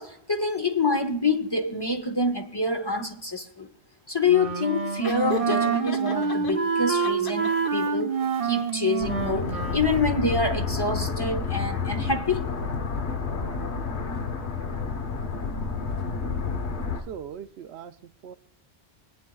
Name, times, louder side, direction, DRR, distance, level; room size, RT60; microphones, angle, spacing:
voice 1, 0.0-3.7 4.1-8.2 8.4-12.5, left 3 dB, 25° left, 0.7 m, -26 dB
Wind instrument woodwind instrument, 4.3-9.9, right 5 dB, 40° right, 0.7 m, -27 dB
Laughter, 5.0-6.5 7.0-7.9, left 7 dB, 55° left, 1.1 m, -35 dB
sound 1, 9.0-17.0, left 5 dB, 85° left, 1.4 m, -30 dB
voice 2, 17.1-18.4, right 8 dB, 80° right, 0.9 m, -40 dB
23.5 x 9.2 x 2.3 m
omnidirectional pair, 1.1 m